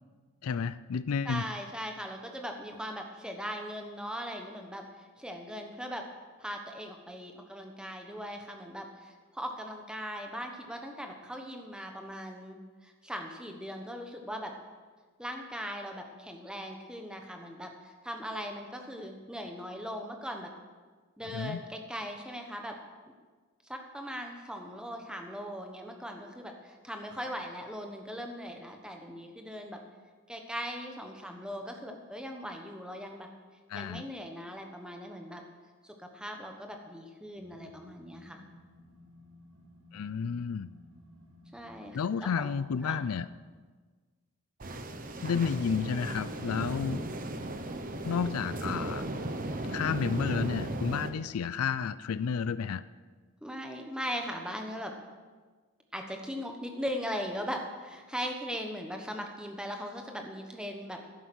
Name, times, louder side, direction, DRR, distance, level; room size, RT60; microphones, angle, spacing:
voice 1, 0.4-1.4 21.3-21.6 33.7-34.0 39.9-40.7 41.9-43.3 45.2-47.1 48.0-49.0 49.7-52.8, left 6 dB, 80° left, 16 dB, 0.4 m, -31 dB
voice 2, 1.2-6.1 6.4-14.5 15.2-20.5 21.2-22.8 23.6-29.8 30.3-33.3 33.7-35.4 35.8-38.4 41.5-42.5 42.8-43.0 53.4-54.9 55.9-61.1, equal, 5° right, 3 dB, 1.1 m, -39 dB
sound 1, 37.3-43.4, left 1 dB, 65° right, 2.1 m, -56 dB
sound 2, 44.6-51.1, right 1 dB, 40° right, 0.9 m, -36 dB
11.5 x 10.0 x 6.2 m, 1.4 s
head